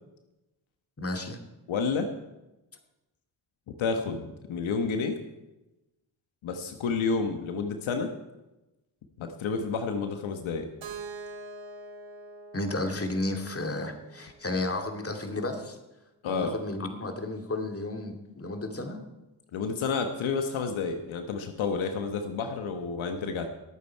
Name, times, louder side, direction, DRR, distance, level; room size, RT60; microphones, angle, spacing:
voice 1, 1.0-1.4 12.5-15.8 16.3-19.0, left 2 dB, 30° left, 4 dB, 2.4 m, -32 dB
voice 2, 1.7-2.1 3.8-5.2 6.4-8.1 9.2-10.7 16.2-16.6 19.5-23.5, left 5 dB, 80° left, 6 dB, 1.3 m, -30 dB
Keyboard (musical), 10.8-14.7, right 3 dB, 70° right, 2.4 m, -44 dB
19.0 x 8.7 x 4.6 m, 1.0 s
supercardioid pair, 55°, 47 cm